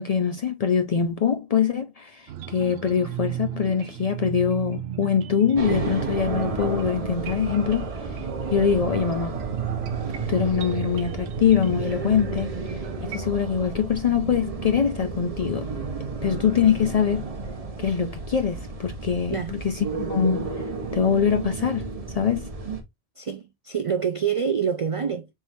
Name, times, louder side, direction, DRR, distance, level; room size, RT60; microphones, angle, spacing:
voice 1, 0.0-8.2 8.5-9.4 10.3-12.5 13.1-15.7 16.2-17.2 17.8-20.5 20.9-21.9 22.1-22.5, left 7 dB, 55° left, 0.4 m, -23 dB
sound 1, 2.3-13.2, right 9 dB, 80° right, 0.8 m, -35 dB
sound 2, 5.6-22.8, right 4 dB, 40° right, 0.8 m, -32 dB
voice 2, 23.2-25.3, right 7 dB, 60° right, 0.3 m, -26 dB
4.4 x 3.7 x 2.6 m
omnidirectional pair, 1.1 m